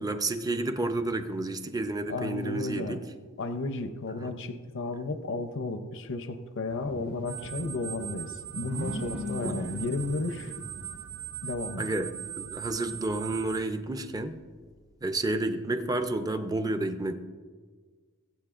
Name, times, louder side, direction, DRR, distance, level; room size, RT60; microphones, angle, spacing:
voice 1, 0.0-3.0 4.2-4.3 9.6-10.0 11.8-14.4 15.0-17.1, right 2 dB, 15° right, 8 dB, 0.6 m, -31 dB
voice 2, 2.1-3.0 3.4-10.5 11.4-11.9, left 3 dB, 60° left, 8 dB, 0.6 m, -33 dB
sound 1, 6.7-11.7 12.3-12.4 12.8-14.6, left 1 dB, 40° right, 1.1 m, -41 dB
sound 2, 7.3-13.6, right 12 dB, 75° right, 0.5 m, -40 dB
22.0 x 8.2 x 2.5 m, 1.5 s
head